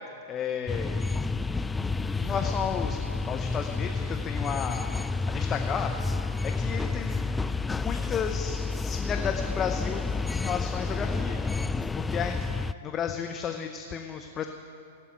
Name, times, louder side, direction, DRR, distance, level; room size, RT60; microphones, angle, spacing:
voice 1, 0.3-1.0 2.0-3.0 3.3-4.9 5.3-5.9 6.4-7.2 7.7-12.4 12.8-14.5, left 7 dB, 25° left, 5 dB, 0.8 m, -33 dB
sound 1, 0.7-12.7, left 3 dB, 10° left, 0.4 m, -30 dB
16.0 x 8.7 x 9.3 m, 2.5 s
hypercardioid pair, 105°, 0 cm